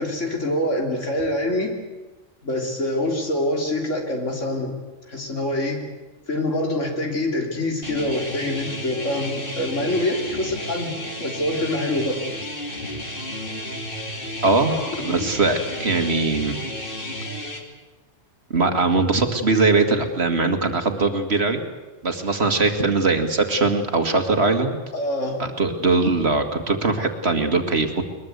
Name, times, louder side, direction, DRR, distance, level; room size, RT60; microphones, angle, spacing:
voice 1, 0.0-1.7 2.4-4.7 5.1-5.8 6.3-11.0 11.2-12.2 14.7-15.6 24.9-25.4, left 1 dB, 75° left, 2 dB, 3.7 m, -25 dB
sound 1, 7.8-17.6, left 1 dB, 45° left, 2.9 m, -32 dB
voice 2, 14.4-16.6 18.5-21.6 22.0-24.8 25.4-28.0, right 3 dB, 55° right, 5 dB, 2.3 m, -21 dB
22.0 x 21.5 x 8.1 m, 1.2 s
omnidirectional pair, 1.3 m